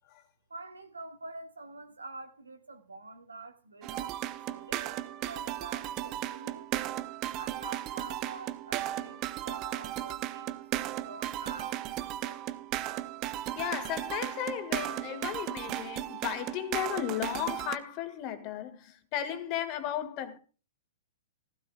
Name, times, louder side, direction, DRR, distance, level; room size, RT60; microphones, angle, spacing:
voice 1, 0.5-6.7 7.3-12.5, right 3 dB, 75° right, 1.9 m, -47 dB
sound 1, 3.8-17.8, right 13 dB, 30° right, 0.8 m, -36 dB
voice 2, 13.6-20.4, left 11 dB, 35° left, 2.1 m, -35 dB
16.0 x 15.5 x 2.3 m
figure-of-eight pair, 110°, 0 cm